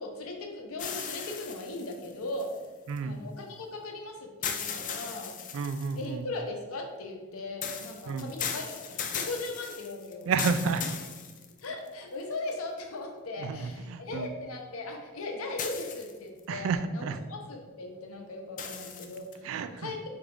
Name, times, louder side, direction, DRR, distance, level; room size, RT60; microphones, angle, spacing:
voice 1, 0.0-2.6 3.0-5.3 5.9-10.3 11.6-19.4 19.8-20.2, left 2 dB, 90° left, 2 dB, 0.7 m, -38 dB
sound 1, 0.8-3.0 4.4-6.1 7.6-11.9 12.5-12.6 15.6-16.4 18.6-19.3, left 7 dB, 40° left, 0.4 m, -37 dB
voice 2, 2.9-3.2 5.5-6.3 8.1-8.3 10.3-10.8 13.4-14.3 16.5-17.2 19.4-19.9, right 5 dB, 70° right, 11 dB, 0.3 m, -31 dB
3.8 x 3.4 x 3.5 m, 1.3 s
head